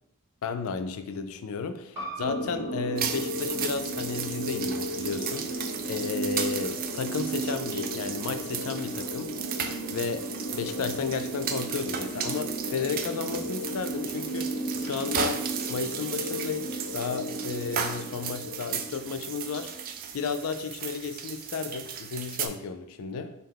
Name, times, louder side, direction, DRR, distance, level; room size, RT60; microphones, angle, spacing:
voice 1, 0.4-9.3 9.9-10.3 10.5-14.5 14.8-16.7 16.9-19.7 20.1-23.3, left 5 dB, 75° left, 9 dB, 0.4 m, -33 dB
sound 1, 1.9-7.1, right 2 dB, 10° right, 1.6 m, -45 dB
sound 2, 2.2-20.0, right 1 dB, 50° left, 1.2 m, -35 dB
sound 3, 3.0-22.5, right 8 dB, 40° right, 0.3 m, -35 dB
5.5 x 2.2 x 3.5 m, 0.83 s
head